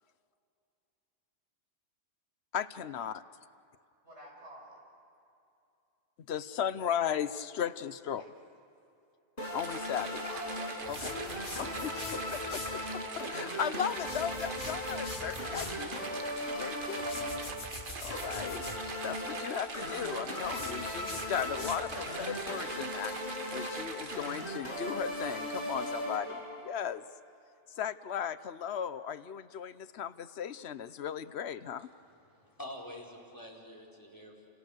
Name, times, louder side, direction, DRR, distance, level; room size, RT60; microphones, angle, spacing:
voice 1, 2.5-3.2 6.3-8.2 9.5-10.2 10.9-11.0 11.8-15.9 16.5-17.3 18.0-18.7 19.0-23.1 23.5-27.0 27.8-31.9, left 8 dB, 65° left, 14 dB, 1.0 m, -36 dB
voice 2, 4.0-4.8 8.1-8.3 10.2-11.2, right 1 dB, 75° right, -1 dB, 6.8 m, -50 dB
sound 1, 9.4-26.8, left 1 dB, 45° left, 6.3 m, -38 dB
sound 2, 9.6-24.7, right 5 dB, 50° right, 1.2 m, -44 dB
sound 3, 10.8-12.8 13.9-15.8 16.9-18.8 20.4-22.0, left 2 dB, 85° left, 2.5 m, -44 dB
voice 3, 31.8-34.5, left 1 dB, 15° left, -2 dB, 4.5 m, -47 dB
30.0 x 29.5 x 6.5 m, 2.7 s
omnidirectional pair, 1.2 m